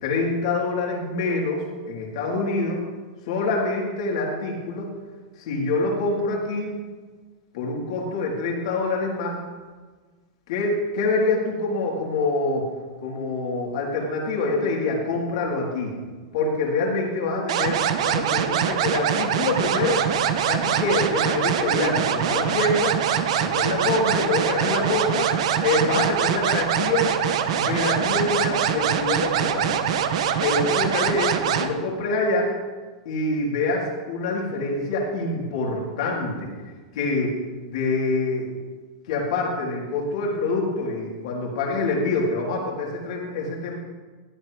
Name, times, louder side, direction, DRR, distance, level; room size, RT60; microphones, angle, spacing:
voice 1, 0.0-2.8 3.3-4.9 5.4-6.8 7.5-9.4 10.5-12.7 13.0-15.9 16.3-20.0 20.5-23.0 23.4-25.3 25.6-27.1 27.5-29.8 30.4-32.5 33.1-36.5 36.9-37.3 37.6-38.5 39.1-43.8, left 3 dB, 70° left, -2 dB, 3.8 m, -25 dB
sound 1, 17.5-31.7, right 8 dB, 70° right, 1.1 m, -23 dB
16.5 x 11.0 x 3.5 m, 1.4 s
hypercardioid pair, 125°, 3 cm